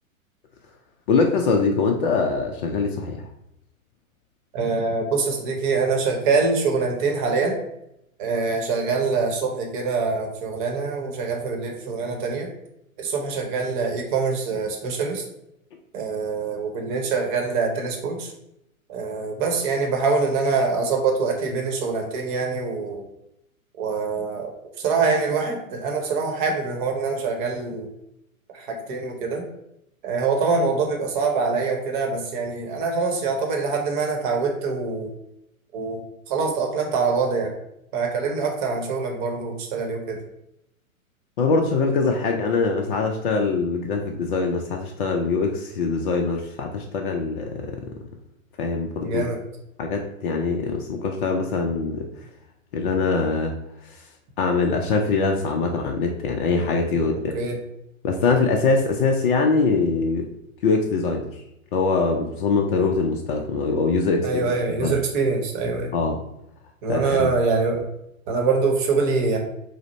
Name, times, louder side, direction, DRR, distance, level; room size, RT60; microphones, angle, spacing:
voice 1, 1.1-3.2 41.4-47.9 48.6-49.2 49.8-52.0 52.7-53.5 53.8-54.1 54.4-57.3 58.0-60.3 60.6-61.4 61.7-65.0 65.9-66.2 66.9-67.3, left 4 dB, 40° left, 1 dB, 0.5 m, -23 dB
voice 2, 4.5-7.6 8.2-12.5 13.0-15.2 15.9-18.3 18.9-23.0 23.8-27.9 28.5-29.4 30.0-35.1 35.7-36.0 36.3-37.5 37.9-40.2 49.0-49.4 57.3-57.6 64.2-65.9 66.8-67.8 68.3-69.4, right 4 dB, 35° right, 2 dB, 0.9 m, -24 dB
4.9 x 2.1 x 4.0 m, 0.82 s
figure-of-eight pair, 115°, 42 cm